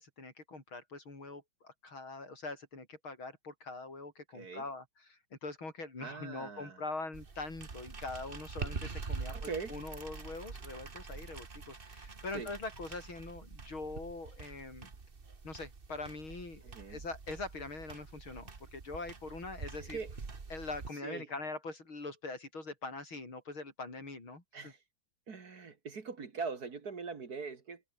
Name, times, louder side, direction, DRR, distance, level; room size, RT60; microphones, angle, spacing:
voice 1, 0.0-14.9 15.4-20.0 20.5-24.7, left 3 dB, 75° left, 6.9 m, -43 dB
voice 2, 4.3-4.6 6.0-6.8 9.3-9.8 12.3-12.5 16.6-17.0 19.8-20.1 21.0-21.3 24.5-24.8 25.3-27.8, right 5 dB, 50° right, 2.3 m, -42 dB
sound 1, 7.1-20.9, right 4 dB, 30° right, 1.7 m, -45 dB
omnidirectional pair, 2.3 m